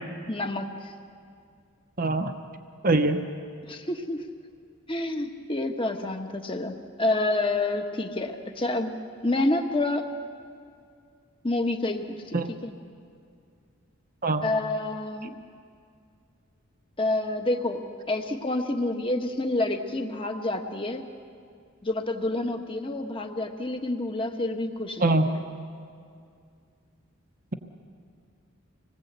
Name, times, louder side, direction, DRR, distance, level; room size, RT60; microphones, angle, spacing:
voice 1, 0.3-0.9 3.7-4.2 4.9-9.0 9.2-10.0 11.4-12.7 14.4-15.3 17.0-21.0 21.8-25.4, left 2 dB, 25° left, 5 dB, 1.4 m, -28 dB
voice 2, 2.0-2.3 2.8-3.2 12.3-12.5 14.2-14.4 25.0-25.2, right 2 dB, 40° right, 6 dB, 1.0 m, -22 dB
26.5 x 20.0 x 8.2 m, 2.3 s
head